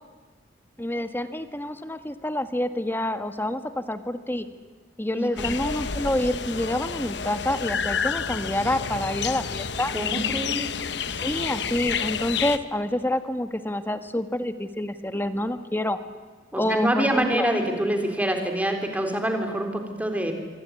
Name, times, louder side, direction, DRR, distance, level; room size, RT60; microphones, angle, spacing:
voice 1, 0.8-4.5 5.0-9.9 11.1-16.0 16.5-17.5, left 1 dB, 10° left, 10 dB, 1.6 m, -27 dB
voice 2, 5.1-5.5 9.9-10.8 16.5-20.3, right 1 dB, 10° right, 5 dB, 3.9 m, -26 dB
sound 1, 5.4-12.6, left 6 dB, 65° left, 1.1 m, -29 dB
25.5 x 24.0 x 9.8 m, 1.4 s
head